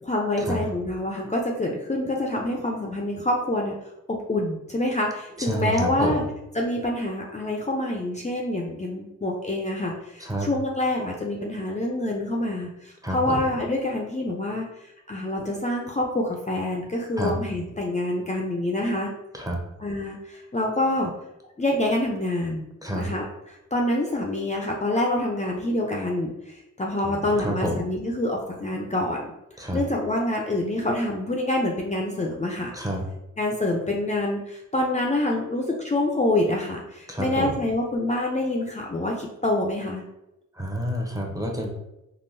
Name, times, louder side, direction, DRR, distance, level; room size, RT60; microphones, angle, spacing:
voice 1, 0.0-3.7 4.1-6.2 6.5-14.7 15.1-19.1 19.8-21.1 21.6-22.7 22.9-29.3 29.7-32.7 33.4-40.0, left 1 dB, 20° left, -1 dB, 0.5 m, -26 dB
voice 2, 5.4-6.3 10.2-10.5 13.0-13.4 17.2-17.3 19.3-19.6 22.8-23.1 27.0-27.8 29.6-29.8 32.7-33.0 37.1-37.5 40.6-41.7, equal, 10° right, 0 dB, 0.8 m, -28 dB
3.6 x 2.2 x 2.6 m, 0.89 s
cardioid pair, 50°, 32 cm